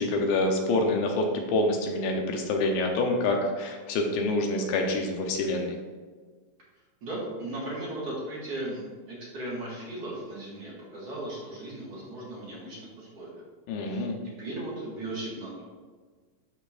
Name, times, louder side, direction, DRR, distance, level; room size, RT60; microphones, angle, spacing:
voice 1, 0.0-5.8 13.7-14.2, left 2 dB, 85° left, 2 dB, 2.7 m, -26 dB
voice 2, 7.0-13.4 13.8-14.1 14.4-15.6, right 1 dB, 50° right, -6 dB, 2.5 m, -37 dB
12.0 x 5.3 x 2.6 m, 1.5 s
omnidirectional pair, 4.2 m